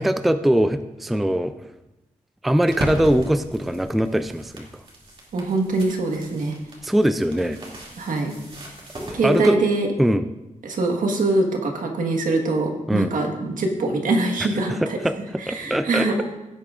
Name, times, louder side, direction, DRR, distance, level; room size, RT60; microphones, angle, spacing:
voice 1, 0.0-1.5 2.4-4.8 6.8-7.6 9.0-9.6 10.0-10.2 12.9-13.1 14.8-16.1, equal, ahead, 10 dB, 0.3 m, -21 dB
sound 1, 2.7-9.4, right 1 dB, 40° right, 2.5 m, -38 dB
voice 2, 5.3-6.6 8.0-8.3 9.1-9.9 10.6-15.0 15.4-16.2, right 2 dB, 80° right, 2 dB, 1.5 m, -23 dB
16.5 x 8.4 x 2.5 m, 0.99 s
wide cardioid pair, 135°, 13 cm